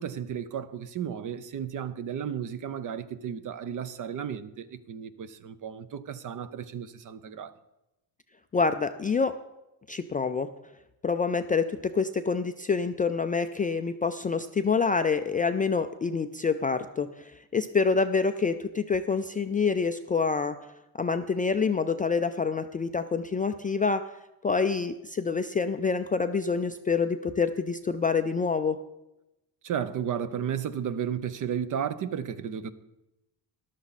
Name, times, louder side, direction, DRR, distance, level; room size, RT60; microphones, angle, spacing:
voice 1, 0.0-7.5 29.6-32.7, right 8 dB, 45° right, 0.8 m, -33 dB
voice 2, 8.5-9.3 9.9-10.5 11.0-20.6 21.0-24.0 24.4-28.8, left 5 dB, 20° left, 0.3 m, -27 dB
13.5 x 11.5 x 4.1 m
cardioid pair, 130°, 43 cm